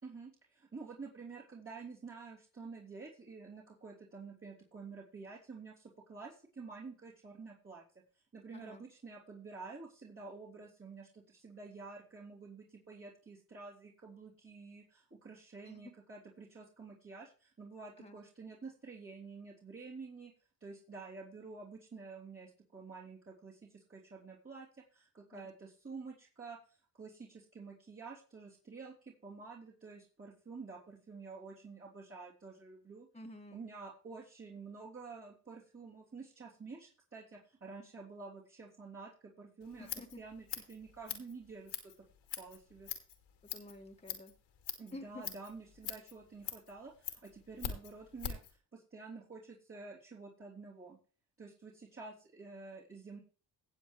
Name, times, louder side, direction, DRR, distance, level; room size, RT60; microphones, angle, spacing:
voice 1, 0.0-7.8 8.3-20.3 20.6-33.1 33.5-41.9 42.4-42.9 44.8-51.0 51.4-53.2, right 4 dB, 30° right, -7 dB, 3.4 m, -50 dB
voice 2, 15.6-16.0 18.0-18.2 25.3-25.5 33.1-33.6 39.8-40.2 43.4-44.3 44.9-45.2, left 1 dB, 15° left, 1 dB, 1.9 m, -50 dB
Scissors, 39.6-48.5, left 9 dB, 75° left, 2.6 m, -44 dB
17.5 x 7.6 x 3.3 m, 0.40 s
supercardioid pair, 70°, 43 cm